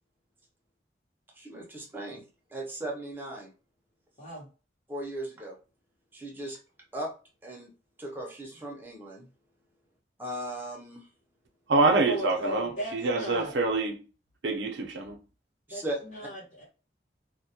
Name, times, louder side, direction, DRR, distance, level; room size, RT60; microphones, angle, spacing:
voice 1, 1.3-2.2 2.5-3.5 4.9-5.6 6.1-6.6 6.9-7.1 7.4-7.7 8.0-9.3 10.2-11.1 15.7-16.0, right 1 dB, 10° right, 0.5 m, -37 dB
voice 2, 4.2-4.5 12.0-13.5 15.7-16.6, equal, 40° left, 0.9 m, -36 dB
voice 3, 11.7-14.0 14.4-15.2, right 3 dB, 90° right, 0.5 m, -26 dB
2.2 x 2.1 x 2.7 m
head